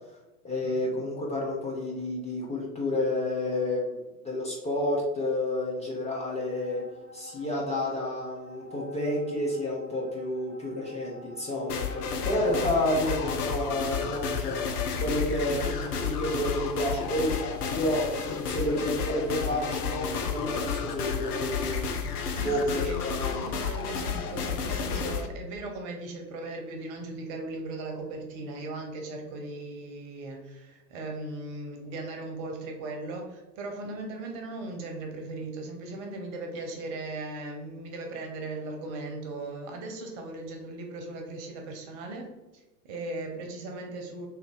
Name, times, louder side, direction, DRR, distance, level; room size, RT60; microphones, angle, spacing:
voice 1, 0.4-6.8 7.1-21.8 22.4-23.5, left 1 dB, 15° left, -3 dB, 0.8 m, -30 dB
sound 1, 5.7-13.8, left 1 dB, 25° right, 1.1 m, -47 dB
sound 2, 11.7-25.3, left 6 dB, 65° left, 0.7 m, -31 dB
voice 2, 15.4-15.9 22.3-23.0 23.4-44.3, right 2 dB, 45° right, 3 dB, 1.1 m, -38 dB
3.6 x 3.0 x 3.8 m, 1.1 s
hypercardioid pair, 95°, 48 cm